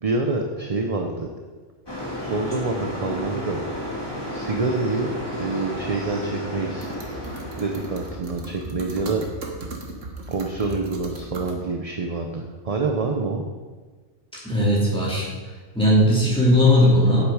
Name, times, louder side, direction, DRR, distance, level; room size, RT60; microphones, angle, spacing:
voice 1, 0.0-1.3 2.2-3.6 4.3-5.1 5.3-6.9 7.5-9.2 10.3-13.4, right 3 dB, 35° right, 2 dB, 0.7 m, -26 dB
sound 1, 1.9-8.1, equal, 20° left, 2.2 m, -32 dB
sound 2, 6.8-11.6, right 2 dB, 80° right, 1.6 m, -37 dB
voice 2, 14.4-15.3 15.7-17.2, left 1 dB, 5° left, -7 dB, 3.1 m, -17 dB
8.5 x 8.3 x 4.9 m, 1.4 s
omnidirectional pair, 1.3 m